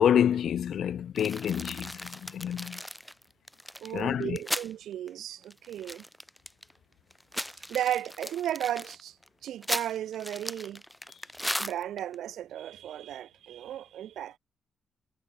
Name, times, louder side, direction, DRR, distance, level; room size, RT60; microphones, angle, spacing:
voice 1, 0.0-2.8 3.9-4.4, left 9 dB, 60° left, 1.0 m, -27 dB
sound 1, 1.2-4.7 5.1-5.2 5.4-6.7 7.1-12.1, equal, 5° left, 1.6 m, -37 dB
voice 2, 3.8-6.0 7.7-9.2 9.4-10.8 11.6-14.4, right 11 dB, 85° right, 3.8 m, -34 dB
wide cardioid pair, 155°, 0 cm